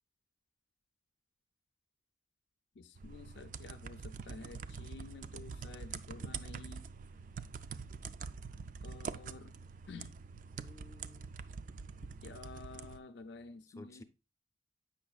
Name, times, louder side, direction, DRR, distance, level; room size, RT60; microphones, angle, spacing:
voice 1, 2.8-6.8 8.8-9.5 9.9-10.1 12.0-14.0, left 3 dB, 75° left, 0.5 m, -51 dB
sound 1, 2.9-13.0, right 5 dB, 45° right, 0.3 m, -45 dB
voice 2, 10.6-11.3 13.7-14.0, left 2 dB, 15° left, 0.6 m, -54 dB
8.2 x 5.9 x 2.3 m
head